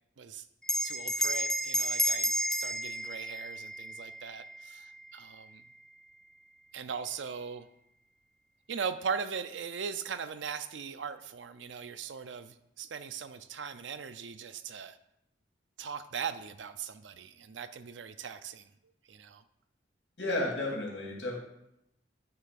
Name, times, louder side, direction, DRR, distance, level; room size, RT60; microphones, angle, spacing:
Bell, 0.6-5.5, equal, 5° left, 0.4 m, -32 dB
voice 1, 0.8-5.6 6.7-7.7 8.7-15.0 15.8-18.7 19.1-19.4, right 6 dB, 80° right, 12 dB, 0.5 m, -39 dB
voice 2, 20.2-21.4, left 1 dB, 70° left, -2 dB, 2.6 m, -32 dB
9.5 x 3.4 x 5.8 m, 0.82 s
head